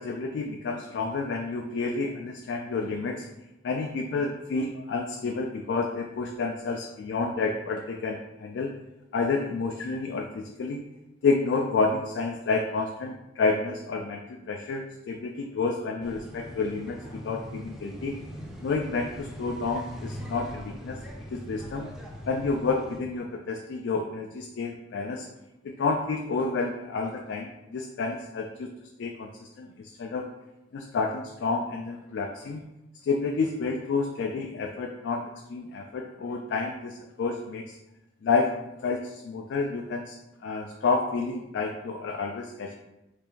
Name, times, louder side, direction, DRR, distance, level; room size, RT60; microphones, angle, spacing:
voice 1, 0.0-3.3 3.6-8.7 9.1-10.8 11.2-18.1 18.6-21.0 21.3-21.9 22.3-25.3 25.6-28.7 29.0-30.3 30.7-32.6 33.0-37.8 38.2-38.5 38.8-40.2 40.4-42.7, left 4 dB, 65° left, 2 dB, 0.3 m, -30 dB
sound 1, 16.0-23.0, equal, 5° right, 0.4 m, -41 dB
3.2 x 2.5 x 3.7 m, 0.93 s
head